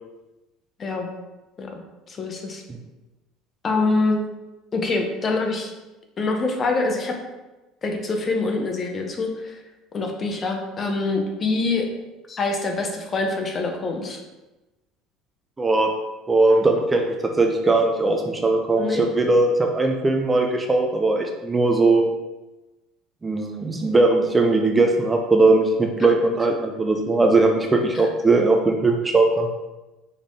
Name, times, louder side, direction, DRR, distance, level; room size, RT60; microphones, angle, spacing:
voice 1, 0.8-1.1 1.6-1.8 2.1-2.6 3.6-4.2 4.7-5.7 6.2-7.2 7.8-9.6 9.9-11.9 12.3-14.2 18.8-19.0, left 3 dB, 30° left, 3 dB, 0.7 m, -25 dB
voice 2, 15.6-15.9 16.3-22.1 23.2-29.5, right 2 dB, 15° right, 3 dB, 0.4 m, -19 dB
5.1 x 3.3 x 2.7 m, 1.1 s
supercardioid pair, 120°, 0 cm